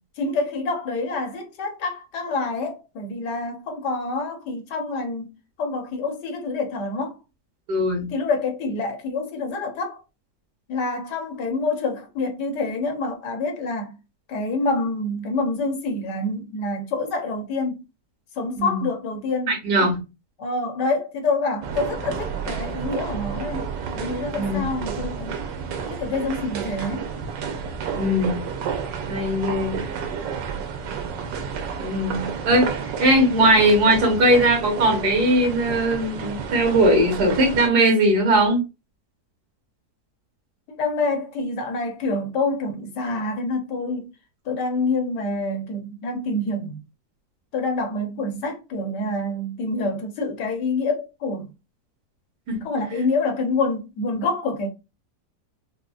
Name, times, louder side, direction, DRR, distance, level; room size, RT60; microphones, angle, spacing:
voice 1, 0.2-7.2 8.1-10.0 10.7-14.0 14.3-17.8 18.4-19.9 20.4-23.6 23.9-25.4 25.9-27.1 40.7-44.1 44.4-46.8 47.5-51.5 52.6-54.7, left 3 dB, 75° left, 1.3 m, -27 dB
voice 2, 7.7-8.1 18.6-18.8 19.5-20.0 24.3-24.7 27.9-28.4 29.1-29.8 31.8-32.7 33.0-38.6 52.5-52.6, right 1 dB, 70° right, 1.8 m, -19 dB
sound 1, 21.6-37.7, right 6 dB, 85° right, 1.3 m, -31 dB
5.0 x 2.1 x 2.3 m
omnidirectional pair, 1.9 m